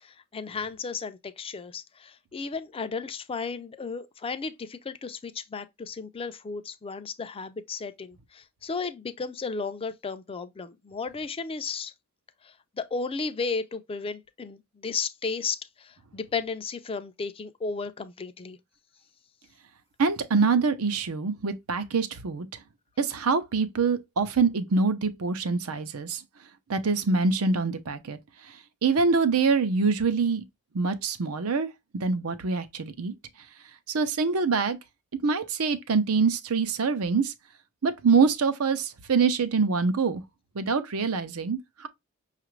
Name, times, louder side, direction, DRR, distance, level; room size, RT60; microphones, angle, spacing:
voice 1, 0.0-11.9 12.4-18.6, left 4 dB, 25° left, 0.4 m, -34 dB
voice 2, 20.0-22.5 23.0-26.2 26.7-28.2 28.8-30.4 30.7-31.7 31.9-33.1 33.9-34.8 35.2-37.3 37.8-40.2 40.5-41.9, right 4 dB, 75° right, 0.6 m, -25 dB
5.7 x 2.5 x 3.1 m
head